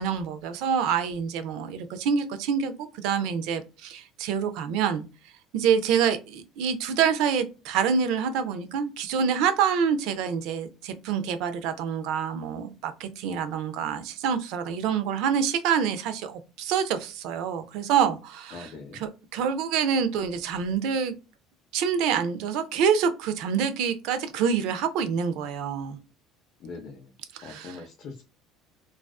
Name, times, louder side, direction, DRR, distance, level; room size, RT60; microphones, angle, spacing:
voice 1, 0.0-5.0 5.5-21.1 21.7-26.0 27.4-27.8, right 7 dB, 75° right, 0.4 m, -26 dB
voice 2, 18.5-19.0 26.6-27.0 27.4-28.2, left 4 dB, 50° left, 0.5 m, -41 dB
2.4 x 2.3 x 2.2 m
cardioid pair, 115°, 0 cm